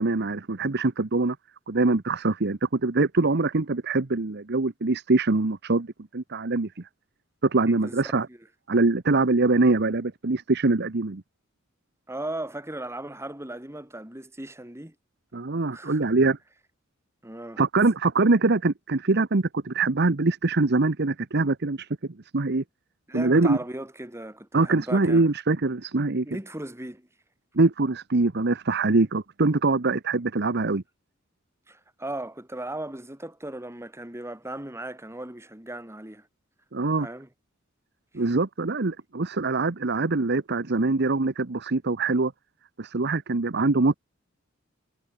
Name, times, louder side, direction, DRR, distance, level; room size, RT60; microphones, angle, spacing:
voice 1, 0.0-1.4 1.7-6.9 7.4-8.3 8.7-11.2 15.3-16.4 17.6-21.9 22.3-22.6 23.1-23.6 24.5-26.3 27.5-30.8 36.7-37.1 38.1-42.3 42.8-43.9, right 3 dB, 55° right, 1.0 m, -23 dB
voice 2, 7.7-8.0 8.3-8.4 12.1-14.9 15.7-16.1 17.2-17.6 23.1-25.2 26.3-27.1 31.7-36.3 37.0-37.3 38.1-38.2, right 1 dB, 15° right, 2.4 m, -37 dB
head